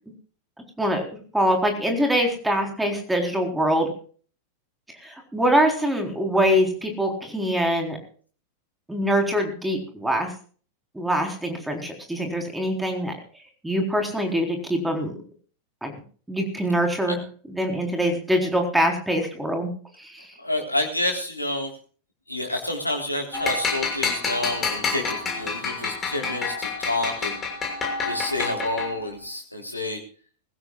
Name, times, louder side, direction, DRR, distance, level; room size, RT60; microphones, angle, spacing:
voice 1, 0.8-3.9 5.0-8.0 8.9-10.3 10.9-13.1 13.6-15.2 15.8-15.9 16.3-17.2 17.5-19.7 20.0-20.3, equal, 5° right, 4 dB, 4.1 m, -24 dB
voice 2, 20.4-21.7 22.3-27.4 28.0-30.0, left 1 dB, 85° left, 3 dB, 3.6 m, -29 dB
sound 1, 23.3-29.1, left 4 dB, 20° left, 6.5 m, -28 dB
21.5 x 15.5 x 2.4 m, 0.42 s
figure-of-eight pair, 90°, 0 cm